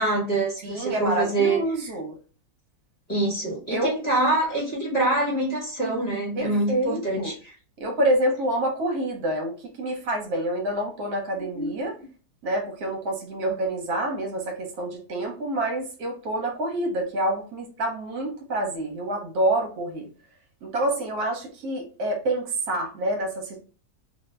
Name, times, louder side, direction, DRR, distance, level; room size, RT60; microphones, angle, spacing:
voice 1, 0.0-1.6 3.1-7.5 11.5-11.7, right 2 dB, 30° left, -5 dB, 1.0 m, -25 dB
voice 2, 0.6-2.2 3.7-3.9 6.3-7.3 7.8-11.9 12.4-20.1 20.6-23.6, right 1 dB, 70° right, 2 dB, 1.3 m, -27 dB
2.6 x 2.6 x 3.2 m, 0.37 s
omnidirectional pair, 1.7 m